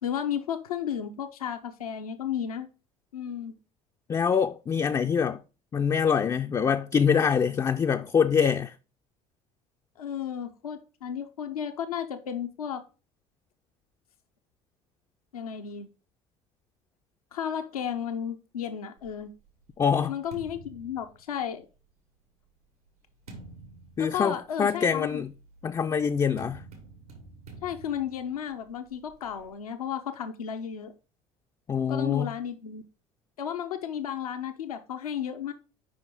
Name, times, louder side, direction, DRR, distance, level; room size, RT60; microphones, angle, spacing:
voice 1, 0.0-2.7 3.1-3.5 10.0-12.8 15.3-15.9 17.3-19.3 20.0-21.7 24.0-25.2 27.6-30.9 31.9-32.8 33.4-35.5, left 8 dB, 85° left, 0.6 m, -33 dB
voice 2, 4.1-5.4 5.7-8.7 19.8-20.1 24.0-25.3 25.6-26.6 31.7-32.3, left 7 dB, 20° left, 0.3 m, -24 dB
sound 1, 19.0-21.8 22.5-29.6, right 3 dB, 85° right, 1.7 m, -50 dB
5.1 x 4.9 x 5.0 m
hypercardioid pair, 65°, 18 cm